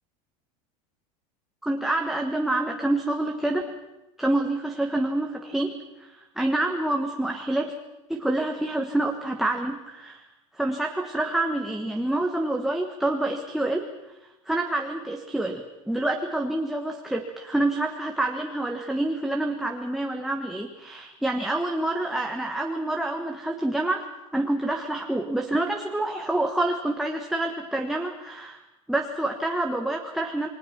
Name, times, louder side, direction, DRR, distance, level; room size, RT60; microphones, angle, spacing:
voice 1, 1.6-3.8 4.2-7.7 8.1-10.2 10.5-13.9 14.5-24.1 24.3-28.6 28.9-30.5, right 1 dB, ahead, 2 dB, 1.4 m, -27 dB
28.5 x 21.5 x 5.9 m, 0.97 s
supercardioid pair, 150°, 18 cm